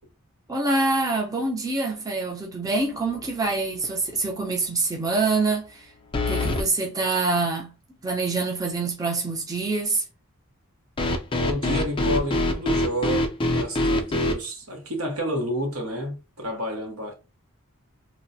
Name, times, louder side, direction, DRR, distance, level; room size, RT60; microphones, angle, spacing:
voice 1, 0.5-5.9 6.3-7.7 8.0-10.0, right 3 dB, 15° right, 0.6 m, -25 dB
sound 1, 3.1-3.5 3.8-3.9 6.1-6.7 11.0-14.4, left 1 dB, 25° left, 0.4 m, -24 dB
voice 2, 11.4-17.1, equal, 70° right, 1.0 m, -30 dB
3.1 x 2.1 x 2.6 m
head